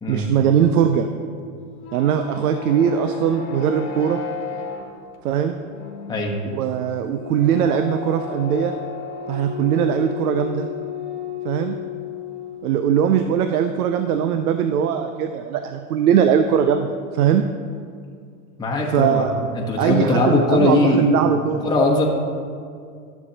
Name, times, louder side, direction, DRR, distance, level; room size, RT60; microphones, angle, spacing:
voice 1, 0.1-1.1 1.9-4.2 5.2-5.5 6.5-8.7 9.3-10.7 11.4-11.7 12.6-17.4 18.9-19.3 19.8-21.7, right 8 dB, 85° right, 8 dB, 0.6 m, -20 dB
sound 1, 1.6-12.8, left 7 dB, 80° left, 1.3 m, -33 dB
voice 2, 18.6-21.1 21.6-22.0, left 2 dB, 10° left, -2 dB, 1.1 m, -20 dB
12.5 x 7.0 x 2.9 m, 2.2 s
hypercardioid pair, 115°, 44 cm